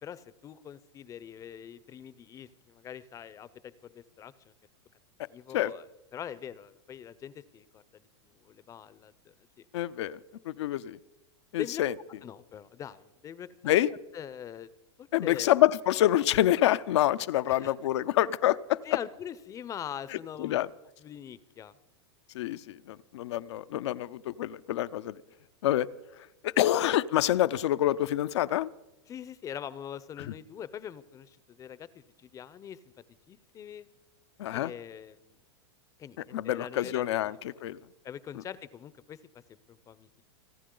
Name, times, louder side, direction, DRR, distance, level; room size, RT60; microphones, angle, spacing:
voice 1, 0.0-4.5 5.2-5.9 6.1-9.6 11.6-11.8 12.2-14.7 15.0-15.5 17.5-17.7 18.8-20.7 21.0-21.8 29.1-32.8 33.3-33.9 34.5-35.4 36.0-37.4 38.0-39.2 39.5-40.2, left 9 dB, 20° left, 17 dB, 0.6 m, -43 dB
voice 2, 9.7-10.2 10.5-11.0 11.5-11.9 13.6-13.9 15.1-18.8 20.4-20.7 22.3-25.2 25.6-25.9 26.4-28.7 34.4-34.7 36.3-37.8, left 13 dB, 70° left, 14 dB, 0.5 m, -27 dB
29.0 x 9.9 x 3.8 m, 1.0 s
hypercardioid pair, 130°, 15 cm